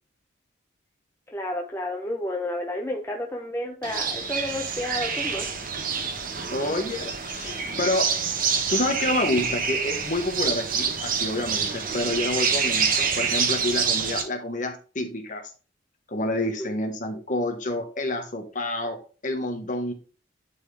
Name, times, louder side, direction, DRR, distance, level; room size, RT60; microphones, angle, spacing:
voice 1, 1.3-5.7 16.6-16.7, left 1 dB, 10° left, 0 dB, 0.7 m, -31 dB
sound 1, 3.8-14.2, right 6 dB, 45° right, 1.1 m, -27 dB
voice 2, 6.5-8.1 8.7-15.5 16.1-19.9, left 1 dB, 40° left, 5 dB, 1.3 m, -28 dB
10.5 x 4.3 x 3.4 m, 0.37 s
head